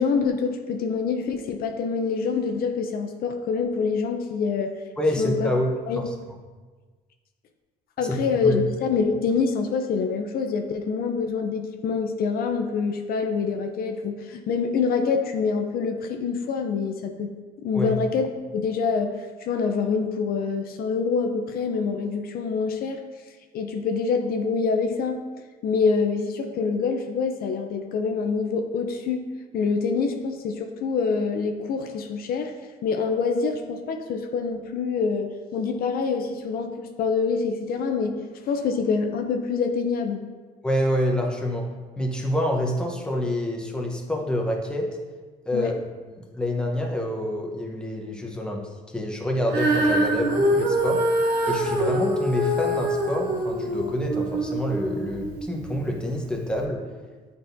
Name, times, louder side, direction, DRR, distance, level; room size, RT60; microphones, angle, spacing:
voice 1, 0.0-4.7 5.2-5.5 5.9-6.0 8.0-17.3 17.6-23.0 23.5-25.2 25.6-32.5 32.8-38.2 38.5-40.2 45.5-45.7, left 5 dB, 65° left, 4 dB, 0.6 m, -26 dB
voice 2, 5.0-5.7 6.0-6.1 8.0-8.2 8.4-8.6 17.7-18.0 40.6-44.9 45.5-45.7 46.1-51.0 51.5-56.8, left 1 dB, 5° left, 0 dB, 0.9 m, -27 dB
Female singing, 49.5-55.8 56.5-56.6, right 1 dB, 90° right, 1.6 m, -24 dB
8.7 x 4.1 x 2.6 m, 1.4 s
cardioid pair, 110°, 17 cm